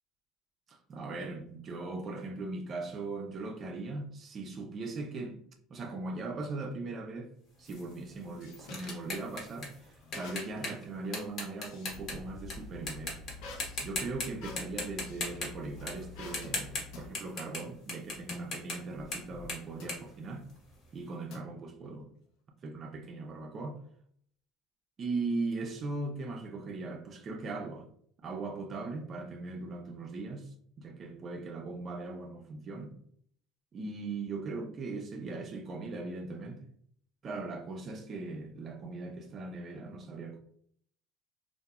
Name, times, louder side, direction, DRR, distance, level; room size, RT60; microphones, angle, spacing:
voice 1, 0.7-5.4 5.7-7.3 7.6-13.2 13.8-20.5 20.9-22.1 22.6-23.8 25.0-27.9 28.2-33.0 33.7-36.7 37.2-40.4, right 3 dB, 35° right, 0.3 m, -39 dB
sound 1, 7.7-12.5 12.9-13.3 13.6-14.3 14.6-20.9, left 2 dB, 45° left, 0.8 m, -39 dB
sound 2, 7.8-8.9 10.1-10.7 11.1-12.3 13.4-15.4 16.1-16.6 16.9-17.1 18.3-18.5 19.8-20.1 21.3-21.9, left 3 dB, 70° left, 0.5 m, -48 dB
sound 3, 11.9-17.1, left 3 dB, 20° right, 0.8 m, -49 dB
2.8 x 2.0 x 2.3 m
cardioid pair, 135°, 0 cm